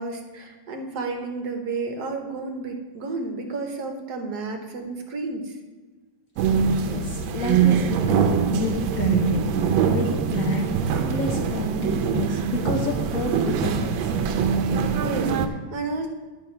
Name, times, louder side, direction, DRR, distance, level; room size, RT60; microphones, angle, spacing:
voice 1, 0.0-5.5 14.6-16.1, right 3 dB, 60° right, 4 dB, 1.3 m, -32 dB
sound 1, 6.4-15.5, right 6 dB, 85° right, 1.4 m, -23 dB
voice 2, 6.8-14.2, left 4 dB, 60° left, 1 dB, 0.9 m, -31 dB
10.5 x 5.6 x 4.4 m, 1.3 s
omnidirectional pair, 2.1 m